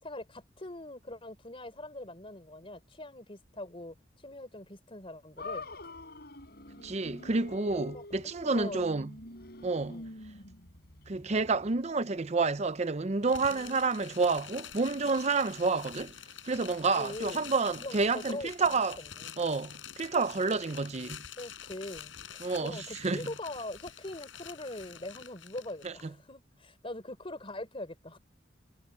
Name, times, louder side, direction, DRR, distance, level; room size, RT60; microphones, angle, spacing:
voice 1, 0.0-5.7 7.7-8.9 9.6-10.1 13.4-13.8 16.9-17.5 17.8-19.4 21.4-28.2, left 1 dB, 30° left, 4.0 m, -42 dB
sound 1, 5.4-11.8, left 2 dB, 55° left, 8.0 m, -46 dB
voice 2, 6.8-9.1 9.6-10.0 11.1-16.1 16.4-19.0 19.4-21.2 22.4-23.3 25.8-25.9, right 4 dB, 35° right, 0.6 m, -29 dB
sound 2, 13.2-26.0, left 9 dB, 80° left, 5.9 m, -47 dB
head